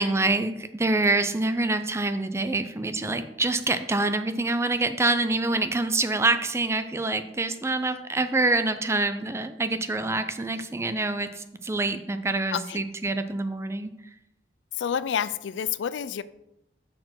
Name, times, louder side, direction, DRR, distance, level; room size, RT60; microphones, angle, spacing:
voice 1, 0.0-13.9, right 2 dB, 15° right, 10 dB, 0.4 m, -26 dB
voice 2, 12.5-12.8 14.8-16.2, left 8 dB, 80° left, 17 dB, 0.3 m, -29 dB
6.5 x 4.4 x 5.8 m, 0.87 s
head